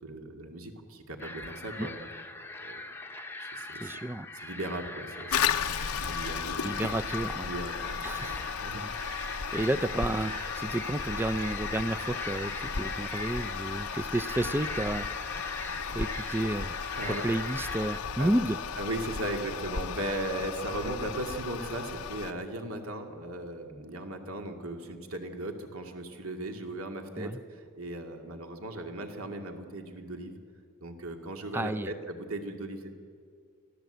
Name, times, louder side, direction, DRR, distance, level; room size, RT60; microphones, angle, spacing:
voice 1, 0.0-2.1 2.6-2.8 3.5-3.9 4.3-5.4 6.0-6.9 7.4-8.8 15.9-16.0 16.9-17.2 18.2-18.3 18.8-30.4 30.8-32.9, right 1 dB, 70° right, 4 dB, 2.3 m, -37 dB
sound 1, 1.2-18.0, left 2 dB, 10° left, 0.9 m, -40 dB
voice 2, 3.7-4.3 6.6-7.5 8.0-8.4 8.7-15.1 15.6-16.8 17.2-18.6 27.2-27.4 31.5-31.9, right 1 dB, 10° right, 12 dB, 0.5 m, -31 dB
Toilet flush, 5.3-22.3, left 6 dB, 90° left, 0.9 m, -35 dB
24.5 x 16.0 x 8.0 m, 2.2 s
head